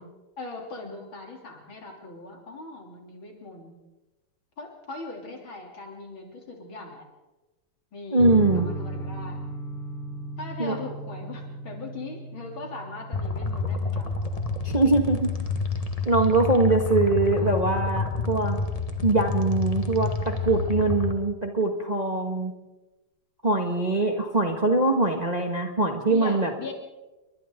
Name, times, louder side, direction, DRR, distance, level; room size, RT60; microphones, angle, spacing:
voice 1, 0.4-3.7 4.6-7.1 7.9-8.3 8.5-9.4 10.4-14.2 16.6-17.6 26.0-26.7, left 3 dB, 65° left, 1 dB, 4.0 m, -40 dB
voice 2, 8.1-8.7 10.6-10.8 14.6-15.3 16.0-18.6 19.0-22.5 23.4-26.7, right 2 dB, 20° right, 3 dB, 1.5 m, -23 dB
sound 1, 8.2-17.2, right 1 dB, 80° right, 4.0 m, -38 dB
sound 2, 13.1-21.1, left 3 dB, 20° left, 1.1 m, -29 dB
29.5 x 23.0 x 3.8 m, 1.1 s
omnidirectional pair, 2.4 m